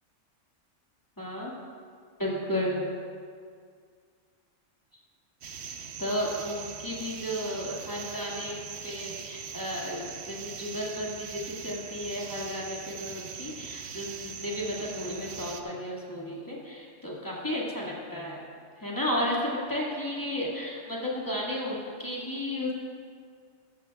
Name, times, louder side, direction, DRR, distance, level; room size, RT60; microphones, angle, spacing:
voice 1, 1.2-1.5 2.2-2.9 6.0-18.4 18.8-22.7, left 1 dB, 15° left, -5 dB, 2.0 m, -33 dB
sound 1, 5.4-15.6, right 6 dB, 60° right, 0.9 m, -41 dB
14.0 x 13.5 x 2.3 m, 2.1 s
omnidirectional pair, 1.3 m